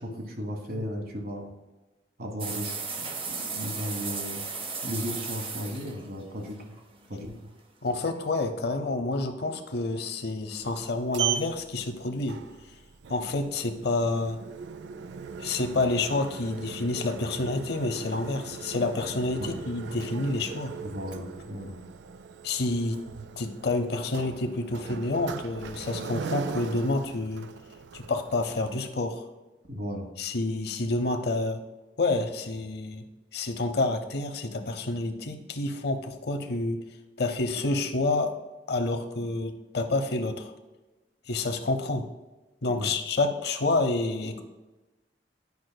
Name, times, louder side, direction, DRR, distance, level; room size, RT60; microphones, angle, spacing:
voice 1, 0.0-1.5 2.2-4.4 4.8-6.6 7.1-7.3 19.3-19.5 20.8-21.8 29.7-30.1 42.7-42.9, equal, 55° right, 3 dB, 1.2 m, -35 dB
sound 1, 2.4-7.3, right 4 dB, 30° right, 0.7 m, -35 dB
voice 2, 7.8-12.4 13.1-14.4 15.4-20.7 22.4-23.0 23.4-27.5 27.9-29.3 30.2-31.6 32.0-33.0 33.3-36.8 37.2-38.4 38.7-40.5 41.3-42.1 42.6-44.4, left 2 dB, 65° left, 7 dB, 0.7 m, -28 dB
Sliding door, 10.5-28.8, right 7 dB, 70° right, 0.4 m, -39 dB
9.4 x 5.7 x 2.2 m, 1.1 s
head